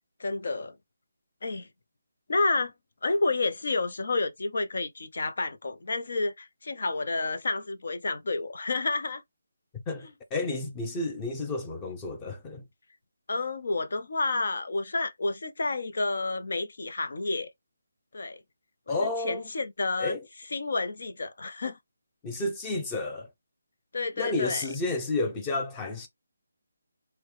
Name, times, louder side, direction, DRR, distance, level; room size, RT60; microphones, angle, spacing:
voice 1, 0.2-0.8 1.4-1.7 2.3-2.7 3.0-9.2 13.3-17.5 18.1-18.4 18.9-20.2 20.5-21.8 23.9-24.7, left 3 dB, 60° left, 0.7 m, -30 dB
voice 2, 9.9-12.7 18.9-19.5 20.0-20.2 22.2-23.3 24.2-26.1, left 2 dB, 15° left, 0.7 m, -31 dB
4.2 x 2.2 x 3.1 m
figure-of-eight pair, 155°, 0 cm